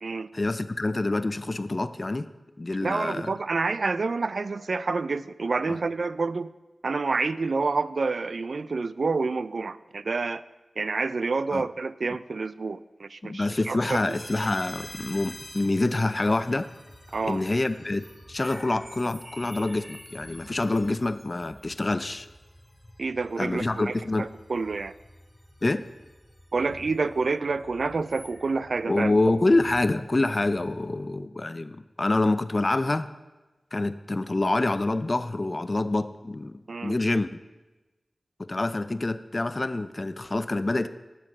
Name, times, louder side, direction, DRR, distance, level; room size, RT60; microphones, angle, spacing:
voice 1, 0.3-2.3 2.6-3.4 5.7-5.8 11.5-11.6 13.2-16.7 17.2-22.3 23.4-24.3 25.6-25.9 28.9-33.1 33.7-37.4 38.4-40.9, left 2 dB, 40° left, 12 dB, 0.4 m, -26 dB
voice 2, 2.8-6.5 6.8-10.4 10.8-14.1 17.1-17.4 23.0-24.9 26.5-29.1 36.7-37.0, right 4 dB, 75° right, 15 dB, 0.4 m, -28 dB
sound 1, 13.9-30.9, equal, 5° right, 3.4 m, -48 dB
9.8 x 7.4 x 7.2 m, 1.1 s
wide cardioid pair, 60°, 0 cm